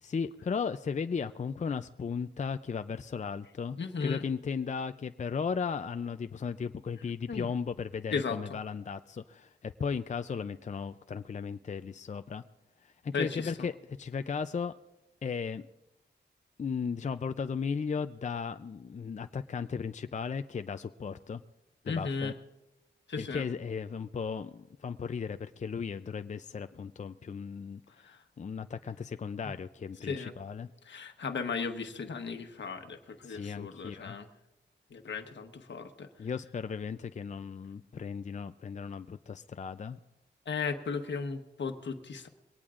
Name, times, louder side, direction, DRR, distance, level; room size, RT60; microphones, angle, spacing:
voice 1, 0.0-12.4 12.8-13.7 14.0-14.7 15.2-15.7 16.6-21.4 21.9-22.3 23.2-30.7 33.2-34.2 36.2-40.0, left 6 dB, 40° left, 10 dB, 0.5 m, -36 dB
voice 2, 3.8-4.2 7.3-7.5 8.1-8.4 13.1-13.5 21.8-22.3 23.1-23.5 28.0-28.2 30.0-30.3 30.8-34.3 34.9-36.1 40.4-42.3, left 5 dB, 80° left, 6 dB, 1.2 m, -35 dB
22.5 x 18.0 x 2.5 m, 0.97 s
cardioid pair, 65°, 19 cm